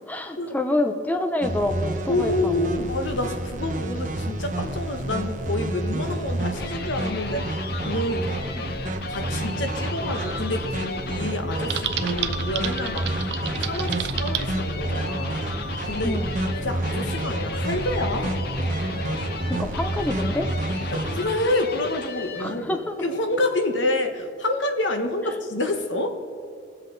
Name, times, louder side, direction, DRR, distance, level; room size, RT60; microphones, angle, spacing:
voice 1, 0.1-2.8 8.8-9.0 16.0-16.4 19.5-20.5 22.4-22.9 25.3-25.4, left 1 dB, 10° left, 6 dB, 0.6 m, -27 dB
sound 1, 1.4-21.2, right 1 dB, 40° right, 1.1 m, -29 dB
voice 2, 2.1-8.3 9.1-15.4 15.9-16.2 16.5-18.4 20.9-26.2, left 1 dB, 80° left, 6 dB, 1.2 m, -28 dB
sound 2, 6.1-22.6, left 4 dB, 55° left, 0.8 m, -36 dB
Typing, 11.7-14.4, right 10 dB, 65° right, 0.6 m, -30 dB
22.5 x 7.6 x 3.9 m, 2.4 s
head